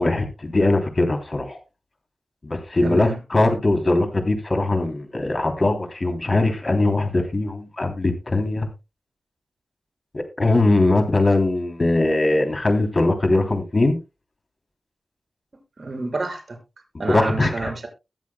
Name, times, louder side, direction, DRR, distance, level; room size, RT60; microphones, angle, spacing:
voice 1, 0.0-1.6 2.4-8.7 10.1-14.0 17.1-17.7, left 2 dB, 45° left, 5 dB, 3.2 m, -21 dB
voice 2, 2.8-3.2 15.8-16.6 17.0-17.9, right 3 dB, 55° right, 3 dB, 4.5 m, -28 dB
21.5 x 7.4 x 2.3 m, 0.26 s
cardioid pair, 50°, 0 cm